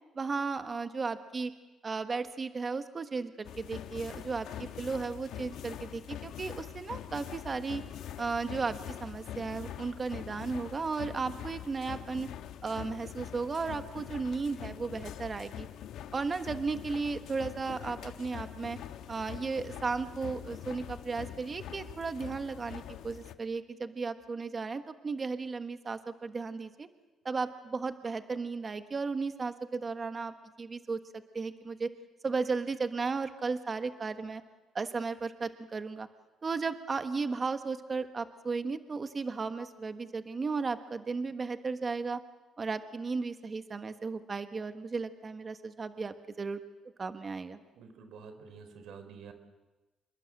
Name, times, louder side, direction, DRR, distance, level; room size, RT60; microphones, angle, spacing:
voice 1, 0.1-1.5 1.8-7.8 8.2-12.3 12.6-15.7 16.1-18.8 19.1-26.9 27.2-31.9 32.2-34.4 34.7-36.1 36.4-42.2 42.6-46.6 47.0-47.6, right 4 dB, 35° right, 9 dB, 1.3 m, -35 dB
sound 1, 3.4-23.3, left 10 dB, 85° left, 1.2 m, -44 dB
voice 2, 47.8-49.3, right 5 dB, 80° right, 9 dB, 4.0 m, -48 dB
27.0 x 22.5 x 7.7 m, 1.1 s
cardioid pair, 90°, 0 cm